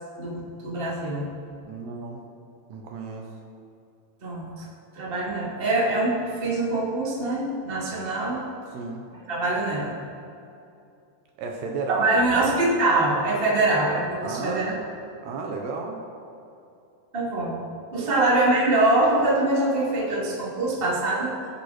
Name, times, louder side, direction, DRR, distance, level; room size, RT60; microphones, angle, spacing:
voice 1, 0.2-1.3 4.2-4.6 4.9-8.4 9.3-9.9 11.9-14.7 17.1-17.5 17.9-21.3, right 2 dB, 15° right, -5 dB, 2.4 m, -24 dB
voice 2, 1.7-2.2 2.7-3.3 8.7-9.1 11.4-12.5 14.2-14.8 15.2-16.0 18.0-18.3, right 4 dB, 70° right, 1 dB, 3.1 m, -32 dB
23.0 x 9.7 x 4.4 m, 2.7 s
omnidirectional pair, 5.2 m